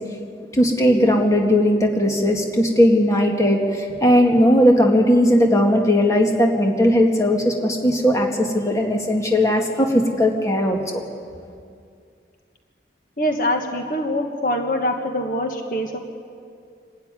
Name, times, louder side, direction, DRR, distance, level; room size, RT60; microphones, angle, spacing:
voice 1, 0.5-11.0, equal, 20° left, 1 dB, 2.0 m, -18 dB
voice 2, 13.2-16.0, left 1 dB, 50° left, 3 dB, 1.5 m, -24 dB
25.5 x 13.0 x 9.8 m, 2.3 s
head